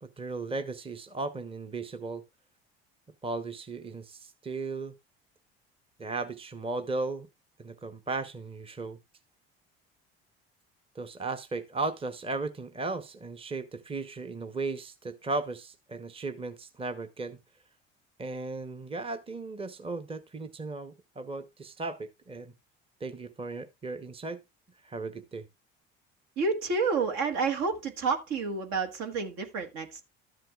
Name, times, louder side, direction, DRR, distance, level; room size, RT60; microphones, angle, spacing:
voice 1, 0.0-2.2 3.2-4.9 6.0-7.3 7.6-9.0 10.9-17.4 18.2-22.5 23.0-24.4 24.8-25.5, right 3 dB, 20° right, 0.9 m, -36 dB
voice 2, 26.4-30.0, right 4 dB, 65° right, 1.5 m, -29 dB
13.0 x 7.5 x 2.4 m
hypercardioid pair, 70°, 30 cm